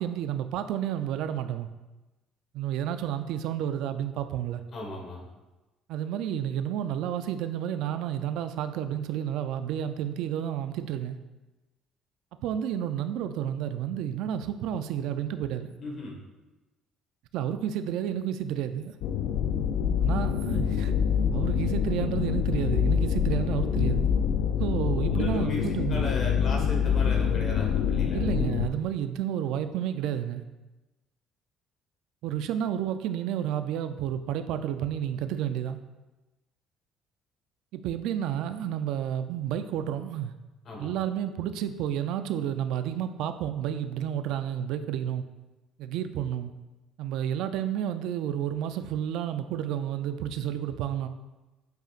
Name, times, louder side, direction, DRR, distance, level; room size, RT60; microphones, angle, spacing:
voice 1, 0.0-1.7 2.5-4.6 5.9-11.2 12.4-15.8 17.3-18.9 20.0-20.9 21.3-24.1 24.6-26.0 28.1-30.4 32.2-35.8 37.7-40.3 40.8-45.2 45.8-46.5 47.0-51.1, right 10 dB, 75° right, 10 dB, 0.4 m, -31 dB
voice 2, 4.7-5.3 15.8-16.2 25.1-28.2 40.6-40.9, left 2 dB, 45° left, 0 dB, 1.6 m, -36 dB
sound 1, 19.0-28.7, left 8 dB, 80° left, 0.4 m, -26 dB
8.1 x 5.1 x 2.5 m, 1.1 s
cardioid pair, 130°, 0 cm